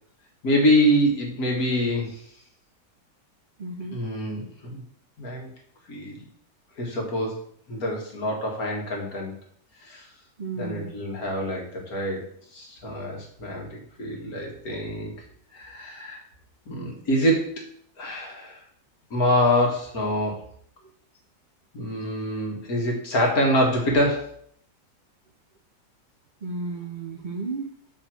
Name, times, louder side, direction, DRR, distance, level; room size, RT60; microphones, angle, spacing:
voice 1, 0.4-2.2 3.9-4.8 5.2-5.5 5.9-6.2 6.8-7.4 7.7-9.3 9.8-10.0 10.6-15.1 15.5-16.2 16.7-17.7 18.0-18.6 19.1-20.3 21.7-24.3, equal, 55° left, 0 dB, 2.2 m, -25 dB
voice 2, 3.6-4.0 10.4-10.9 26.4-27.7, right 3 dB, 70° right, 4 dB, 0.4 m, -33 dB
5.7 x 4.4 x 6.3 m, 0.62 s
omnidirectional pair, 1.9 m